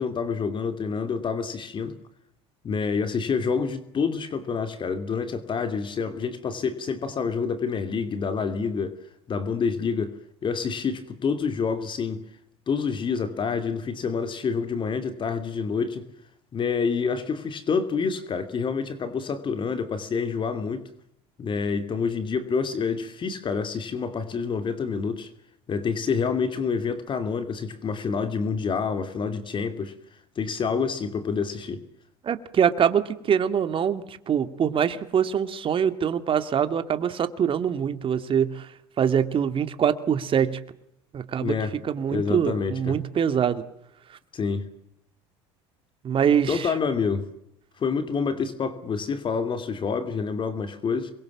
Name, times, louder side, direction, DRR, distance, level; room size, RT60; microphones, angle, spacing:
voice 1, 0.0-2.0 2.6-9.0 9.3-10.2 10.4-12.2 12.7-16.0 16.5-20.8 21.4-25.3 25.7-29.9 30.4-31.8 41.4-41.8 42.1-43.0 44.3-44.7 46.5-47.3 47.8-51.1, left 5 dB, 35° left, 9 dB, 2.8 m, -27 dB
voice 2, 32.3-38.6 39.0-40.6 41.1-41.5 41.9-43.6 46.0-46.7, right 8 dB, 40° right, 11 dB, 2.3 m, -24 dB
27.5 x 23.0 x 7.3 m, 0.76 s
supercardioid pair, 95°, 14 cm